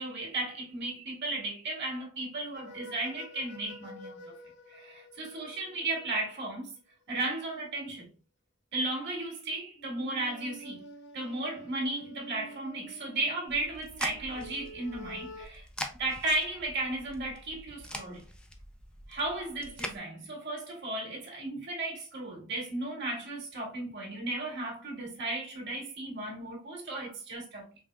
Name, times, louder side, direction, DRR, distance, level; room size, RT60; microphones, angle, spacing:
voice 1, 0.0-4.4 4.7-6.7 7.1-8.1 8.7-10.8 11.1-15.7 16.0-18.2 19.1-27.8, right 2 dB, 55° right, 1.8 m, -35 dB
sound 1, 2.5-6.4 9.8-15.5, equal, 55° left, 0.5 m, -49 dB
sound 2, 13.5-20.0, left 1 dB, 5° left, 0.3 m, -43 dB
5.2 x 2.1 x 2.3 m
head